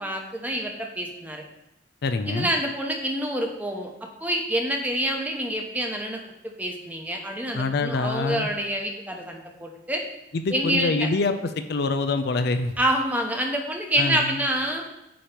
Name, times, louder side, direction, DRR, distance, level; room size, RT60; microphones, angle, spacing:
voice 1, 0.0-1.4 2.3-10.0 10.5-11.1 12.8-14.8, equal, 10° right, 2 dB, 0.8 m, -27 dB
voice 2, 2.0-2.5 7.5-8.5 10.3-12.8 14.0-14.3, left 3 dB, 65° left, 8 dB, 0.5 m, -25 dB
8.7 x 3.0 x 5.1 m, 0.91 s
head